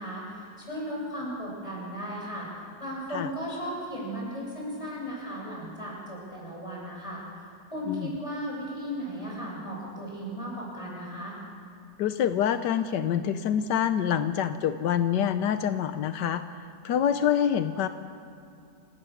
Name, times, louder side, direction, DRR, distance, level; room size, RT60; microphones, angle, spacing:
voice 1, 0.0-2.5 2.8-7.2 7.7-11.4, equal, 20° left, -4 dB, 7.3 m, -36 dB
voice 2, 12.0-16.4 16.8-17.9, left 9 dB, 85° left, 10 dB, 1.4 m, -26 dB
27.5 x 18.0 x 7.1 m, 2.6 s
omnidirectional pair, 1.8 m